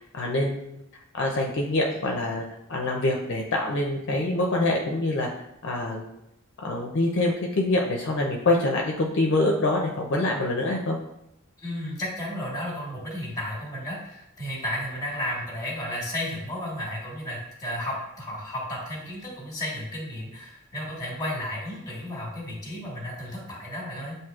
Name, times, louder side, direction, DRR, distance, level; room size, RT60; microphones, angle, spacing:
voice 1, 0.1-0.8 1.1-2.4 2.7-5.3 5.6-6.1 6.6-11.0, left 2 dB, 55° left, 0 dB, 0.5 m, -25 dB
voice 2, 11.6-24.2, left 1 dB, 15° left, -3 dB, 1.3 m, -33 dB
7.3 x 2.7 x 2.4 m, 0.83 s
head